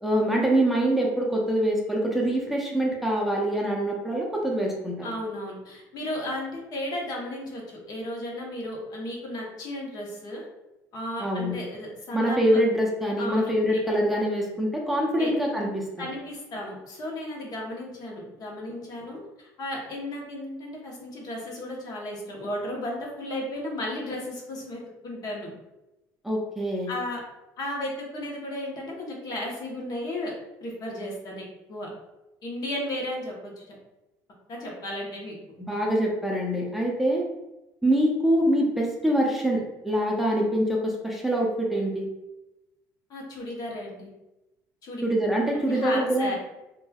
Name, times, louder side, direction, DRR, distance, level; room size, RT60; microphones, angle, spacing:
voice 1, 0.0-5.1 11.2-11.6 12.1-16.1 26.2-26.9 35.6-37.3 37.8-42.1 45.0-46.3, right 1 dB, ahead, -2 dB, 0.6 m, -24 dB
voice 2, 5.0-10.5 10.9-12.6 13.2-13.8 15.2-15.3 16.0-25.5 26.9-27.2 27.6-30.3 30.6-31.9 32.4-33.6 34.5-35.4 43.1-44.1 44.8-45.0 45.5-46.3, left 1 dB, 50° left, -1 dB, 0.9 m, -34 dB
3.0 x 2.2 x 2.3 m, 0.97 s
supercardioid pair, 85°, 8 cm